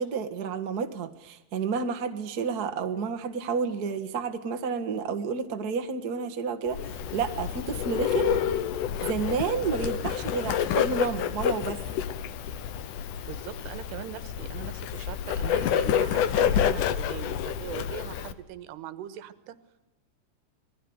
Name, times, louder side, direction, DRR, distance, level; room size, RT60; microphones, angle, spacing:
voice 1, 0.0-6.8 7.1-8.4 9.0-11.8, right 5 dB, 60° right, 7 dB, 1.0 m, -30 dB
Bird, 6.7-18.3, left 9 dB, 70° left, 2.2 m, -28 dB
voice 2, 13.2-19.6, right 11 dB, 80° right, 12 dB, 3.3 m, -41 dB
26.5 x 20.0 x 8.0 m, 1.0 s
omnidirectional pair, 4.8 m